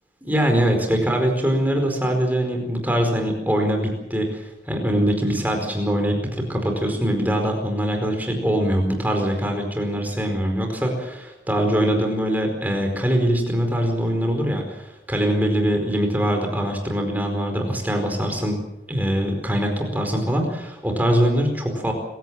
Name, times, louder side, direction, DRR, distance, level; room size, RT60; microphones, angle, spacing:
voice 1, 0.2-18.6 18.9-21.9, equal, 10° right, 3 dB, 4.7 m, -23 dB
26.0 x 16.5 x 7.6 m, 0.94 s
head